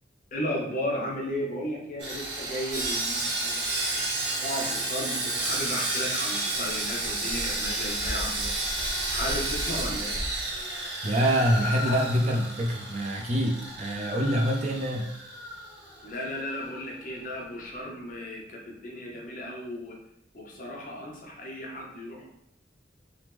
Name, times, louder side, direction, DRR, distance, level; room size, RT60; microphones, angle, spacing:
voice 1, 0.3-3.6 4.4-8.6 9.1-10.2 11.8-12.0 16.0-20.0 20.3-22.3, left 1 dB, 45° left, -1 dB, 0.6 m, -34 dB
Sawing, 2.0-16.3 16.5-16.7 17.2-17.3, right 2 dB, 75° right, 0.7 m, -31 dB
voice 2, 11.0-15.1, equal, 40° right, 2 dB, 0.4 m, -26 dB
2.9 x 2.0 x 3.4 m, 0.77 s
head